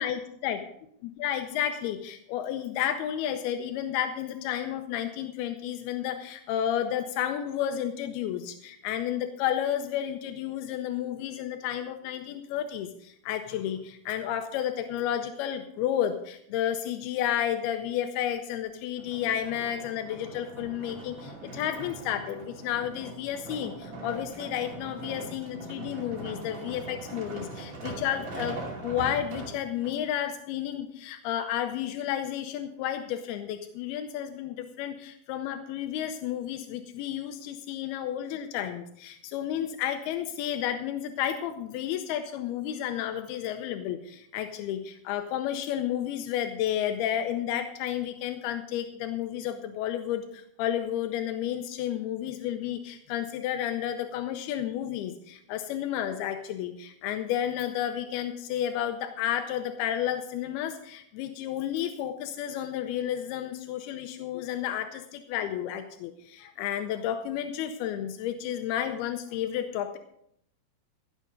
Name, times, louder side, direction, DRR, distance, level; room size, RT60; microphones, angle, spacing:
voice 1, 0.0-0.6 1.0-70.0, left 10 dB, 85° left, 7 dB, 2.7 m, -31 dB
sound 1, 19.0-30.0 30.6-30.7, right 2 dB, 50° right, 3.6 m, -41 dB
14.5 x 7.5 x 5.2 m, 0.72 s
omnidirectional pair, 4.5 m